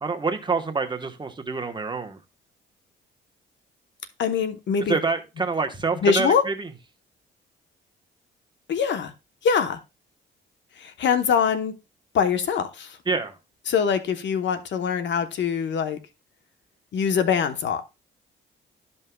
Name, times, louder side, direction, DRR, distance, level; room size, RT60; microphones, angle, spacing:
voice 1, 0.0-2.2 4.9-6.7 13.1-13.3, right 4 dB, 25° right, 1.1 m, -26 dB
voice 2, 4.2-5.0 6.0-6.4 8.7-9.1 9.4-9.8 10.8-11.7 12.1-13.0 13.7-16.0 16.9-17.8, left 6 dB, 65° left, 1.0 m, -23 dB
12.5 x 5.5 x 2.3 m
cardioid pair, 90°, 20 cm